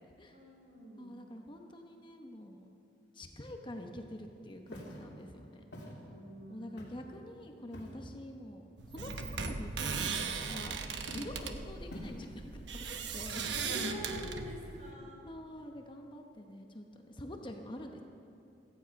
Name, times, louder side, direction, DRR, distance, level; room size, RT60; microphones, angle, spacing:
voice 1, 0.3-1.1 6.0-6.9 13.4-15.3, equal, 45° right, -2 dB, 4.8 m, -46 dB
voice 2, 1.0-2.7 3.1-5.6 6.5-10.8 11.1-12.9 13.1-13.4 15.3-18.0, left 1 dB, 30° left, 3 dB, 1.0 m, -46 dB
Walk footsteps, 4.7-5.0 5.7-5.9 6.8-7.1 7.7-8.1 8.9-9.3 10.2-10.7 11.1-11.4 11.9-12.4 13.4-13.8, equal, 70° left, 3.2 m, -47 dB
sound 1, 8.8-14.9, right 5 dB, 90° right, 1.0 m, -38 dB
16.5 x 15.0 x 5.3 m, 2.6 s
head